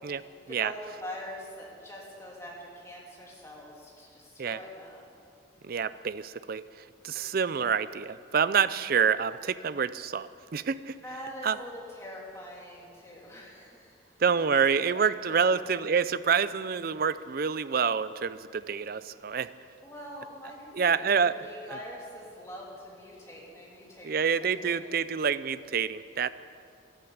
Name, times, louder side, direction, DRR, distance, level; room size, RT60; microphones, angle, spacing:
voice 1, 0.0-5.2 7.6-7.7 11.0-14.0 14.9-15.0 15.3-15.7 19.8-24.2 24.4-25.0, equal, 15° left, -4 dB, 2.9 m, -44 dB
voice 2, 5.6-6.6 7.0-11.0 11.4-11.6 14.2-19.5 20.7-21.3 24.0-26.3, right 6 dB, 45° right, 15 dB, 0.4 m, -27 dB
13.5 x 12.0 x 8.5 m, 2.5 s
head